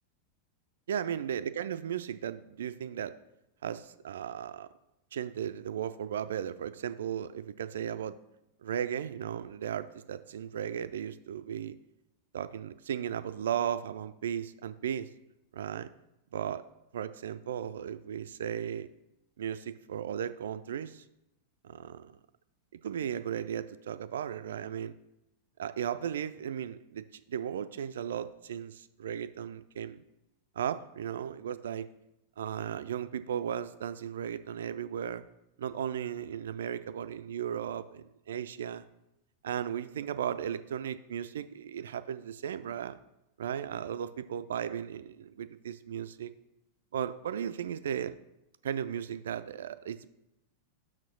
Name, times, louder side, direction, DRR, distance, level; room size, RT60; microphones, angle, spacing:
voice 1, 0.9-3.1 3.6-4.7 5.1-8.2 8.6-11.8 12.3-15.1 15.5-15.9 16.3-16.6 16.9-18.9 19.4-21.0 21.6-22.2 22.7-25.0 25.6-30.0 30.6-31.9 32.4-35.2 35.6-38.8 39.4-43.0 43.4-46.3 46.9-48.1 48.6-50.1, right 9 dB, 60° right, 13 dB, 0.3 m, -36 dB
6.1 x 4.3 x 5.9 m, 0.88 s
figure-of-eight pair, 90°, 0 cm